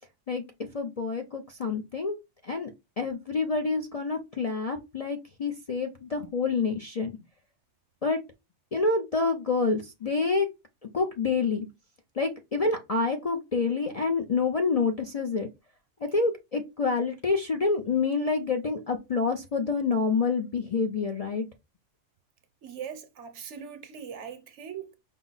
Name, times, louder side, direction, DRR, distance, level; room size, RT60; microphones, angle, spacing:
voice 1, 0.7-2.2 2.4-2.7 3.0-7.1 8.0-8.2 8.7-10.5 10.9-11.7 12.1-15.5 16.0-21.5, left 4 dB, 50° left, 0.4 m, -27 dB
voice 2, 22.6-24.9, right 7 dB, 70° right, 1.0 m, -40 dB
5.4 x 2.0 x 3.9 m
omnidirectional pair, 1.3 m